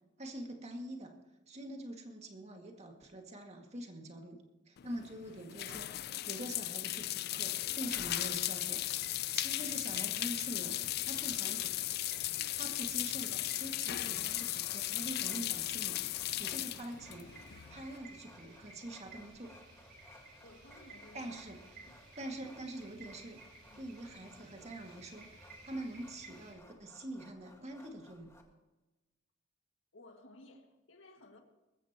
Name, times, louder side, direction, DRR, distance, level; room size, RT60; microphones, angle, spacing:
voice 1, 0.2-1.2 1.5-8.8 9.3-11.8 12.3-17.3 17.7-19.6 21.1-21.6 22.2-23.4 23.8-28.3, right 1 dB, 35° right, 3 dB, 2.1 m, -45 dB
sound 1, 4.8-18.0, left 15 dB, 55° left, 0.4 m, -36 dB
sound 2, 7.3-26.5, right 2 dB, 50° right, 4.5 m, -56 dB
sound 3, 14.0-28.4, left 1 dB, 15° left, 1.8 m, -61 dB
voice 2, 20.4-21.3 21.8-22.0 23.7-23.8 29.9-31.4, left 1 dB, 75° left, 3 dB, 2.0 m, -57 dB
20.0 x 15.0 x 3.0 m, 1.1 s
head